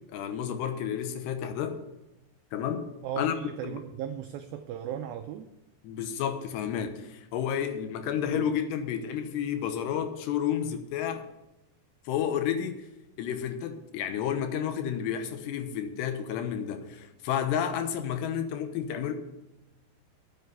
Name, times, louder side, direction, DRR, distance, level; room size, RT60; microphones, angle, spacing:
voice 1, 0.0-1.8 2.5-2.9 3.2-3.3 3.6-3.8 5.8-11.2 12.1-12.9 13.2-19.1, left 9 dB, 80° left, 7 dB, 3.1 m, -31 dB
voice 2, 3.0-5.5 8.3-8.5, right 9 dB, 85° right, 7 dB, 2.1 m, -37 dB
9.7 x 7.9 x 8.3 m, 0.98 s
omnidirectional pair, 4.9 m